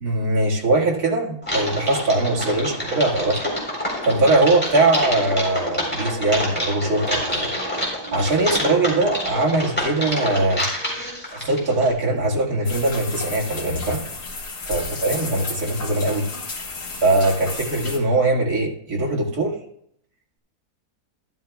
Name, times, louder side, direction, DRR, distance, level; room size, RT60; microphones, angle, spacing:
voice 1, 0.0-3.5 4.0-7.5 8.1-10.6 11.3-14.0 14.7-16.3 17.0-19.6, right 2 dB, 65° right, -3 dB, 2.4 m, -21 dB
Typing, 1.4-11.9, equal, 5° left, 3.7 m, -27 dB
sound 1, 12.6-18.0, left 3 dB, 85° left, 2.2 m, -32 dB
12.5 x 12.5 x 2.3 m, 0.69 s
omnidirectional pair, 1.7 m